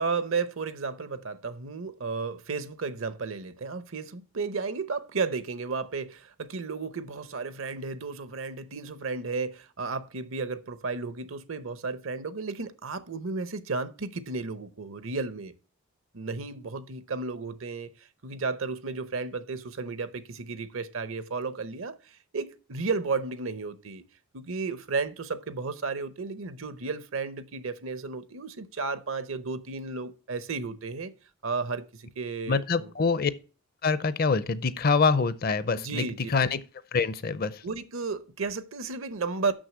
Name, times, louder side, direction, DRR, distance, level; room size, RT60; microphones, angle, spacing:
voice 1, 0.0-15.5 16.1-17.9 18.2-24.0 24.3-31.1 31.4-32.9 35.7-36.3 37.6-39.5, right 4 dB, 70° right, 0.8 m, -33 dB
voice 2, 32.5-33.3 33.8-36.0 36.3-36.6 36.9-37.6, left 4 dB, 45° left, 0.5 m, -25 dB
6.3 x 6.3 x 7.3 m
head